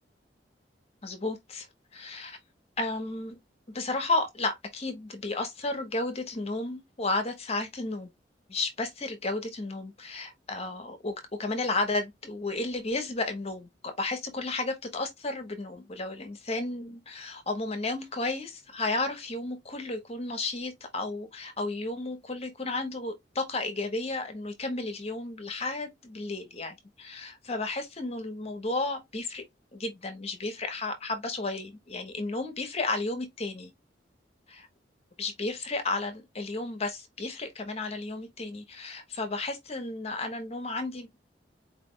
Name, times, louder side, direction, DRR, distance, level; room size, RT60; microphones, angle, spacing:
voice 1, 1.0-1.7 1.9-2.4 2.8-3.4 3.7-8.1 8.5-29.4 29.7-33.7 35.2-41.1, left 2 dB, 35° left, 1.2 m, -33 dB
4.5 x 3.4 x 3.2 m
head